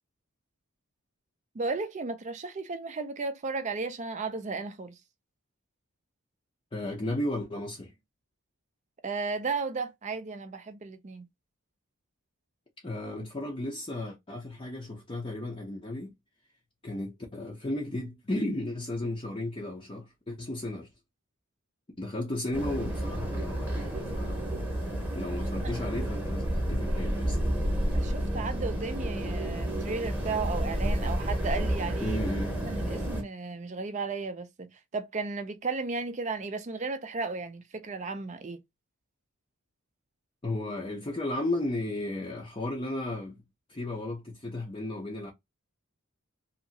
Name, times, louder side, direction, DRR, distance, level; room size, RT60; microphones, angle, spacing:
voice 1, 1.5-5.0 9.0-11.3 25.6-25.7 27.9-32.2 32.7-38.6, right 4 dB, 30° right, 0.4 m, -34 dB
voice 2, 6.7-7.9 12.8-16.1 16.8-20.9 22.0-24.5 25.1-27.4 32.0-32.6 40.4-43.4 43.7-45.3, left 1 dB, 25° left, 0.6 m, -34 dB
sound 1, 22.5-33.2, right 1 dB, 10° right, 0.9 m, -30 dB
2.8 x 2.6 x 2.6 m
head